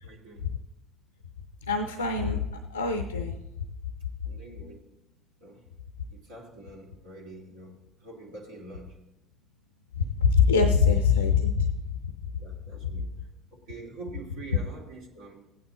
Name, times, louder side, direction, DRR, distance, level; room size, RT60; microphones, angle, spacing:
voice 1, 0.0-0.5 4.2-4.8 5.4-5.6 6.1-9.0 12.4-13.1 13.5-15.4, right 2 dB, 70° right, -3 dB, 2.0 m, -45 dB
voice 2, 1.7-2.4 2.7-3.4 10.0-11.7 12.8-12.9, left 6 dB, 85° left, 7 dB, 0.5 m, -23 dB
16.0 x 9.3 x 3.0 m, 0.91 s
figure-of-eight pair, 55°, 0 cm